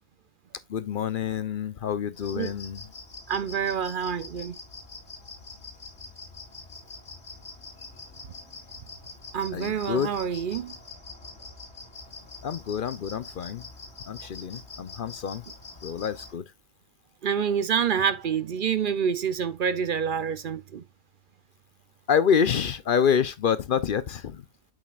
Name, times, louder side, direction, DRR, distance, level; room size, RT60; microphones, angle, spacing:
voice 1, 0.7-2.8 9.5-10.2 12.4-13.6 14.1-15.4 15.8-16.4 22.1-24.4, left 7 dB, 55° left, 0.7 m, -27 dB
sound 1, 2.1-16.3, left 3 dB, 75° left, 3.0 m, -44 dB
voice 2, 3.3-4.5 9.3-10.7 17.2-20.8, right 7 dB, 55° right, 0.7 m, -27 dB
8.0 x 7.1 x 2.4 m
omnidirectional pair, 1.1 m